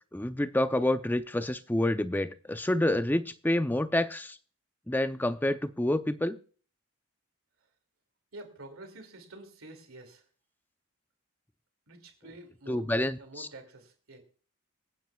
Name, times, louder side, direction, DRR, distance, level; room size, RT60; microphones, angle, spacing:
voice 1, 0.1-4.4 4.9-6.4 12.7-13.5, left 1 dB, 10° left, 10 dB, 0.5 m, -28 dB
voice 2, 8.3-10.3 11.9-14.2, right 1 dB, 85° right, 4 dB, 2.5 m, -48 dB
26.0 x 9.3 x 2.3 m, 0.41 s
head